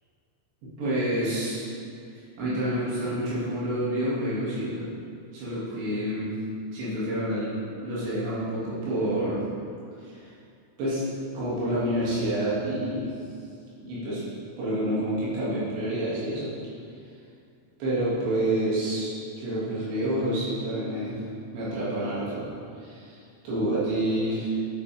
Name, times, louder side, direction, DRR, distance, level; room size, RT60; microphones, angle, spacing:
voice 1, 0.8-1.7 2.1-4.9 5.3-6.3 6.7-9.4 10.0-10.3 10.8-11.0 11.3-13.1 13.8-14.2 14.6-16.5 17.8-21.2 21.5-22.5 22.8-24.6, right 1 dB, 80° right, -9 dB, 4.7 m, -28 dB
11.5 x 7.9 x 3.6 m, 2.4 s
omnidirectional pair, 5.0 m